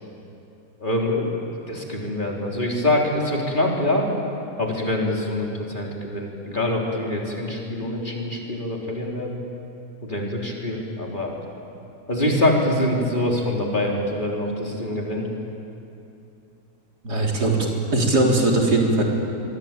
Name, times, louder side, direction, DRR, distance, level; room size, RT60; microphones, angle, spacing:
voice 1, 0.8-1.4 1.7-4.1 4.6-9.4 10.0-11.4 12.1-15.3, left 1 dB, 30° left, -2 dB, 3.9 m, -24 dB
voice 2, 17.0-19.0, right 2 dB, 75° right, -1 dB, 4.4 m, -20 dB
25.0 x 23.5 x 9.0 m, 2.7 s
omnidirectional pair, 1.7 m